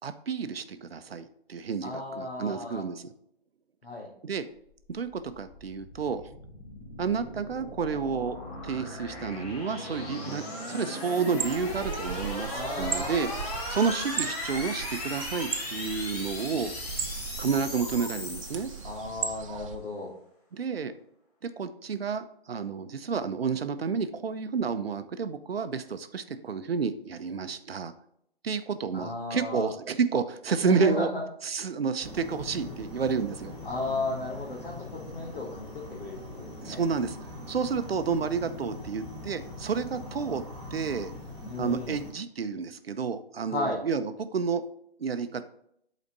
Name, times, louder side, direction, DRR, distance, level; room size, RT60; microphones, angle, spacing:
voice 1, 0.0-3.1 4.2-4.4 4.9-6.3 7.0-8.4 8.6-13.3 13.7-16.7 17.4-18.7 20.5-20.9 21.6-27.9 28.4-31.1 31.4-33.6 36.6-37.2 37.5-40.4 40.7-41.1 41.6-44.6 45.0-45.5, right 5 dB, 75° right, 10 dB, 0.7 m, -30 dB
voice 2, 1.8-2.8 3.8-4.1 12.5-13.2 18.8-20.1 28.9-29.7 30.6-31.2 33.6-36.8 41.5-42.0 43.5-43.8, left 3 dB, 60° left, -5 dB, 2.0 m, -34 dB
sound 1, 4.7-19.2, left 1 dB, 40° left, 2.5 m, -38 dB
sound 2, 11.3-19.8, right 7 dB, 35° right, 0.6 m, -37 dB
sound 3, 32.0-42.1, left 1 dB, ahead, 2.7 m, -42 dB
8.2 x 4.2 x 4.0 m, 0.72 s
figure-of-eight pair, 145°, 30 cm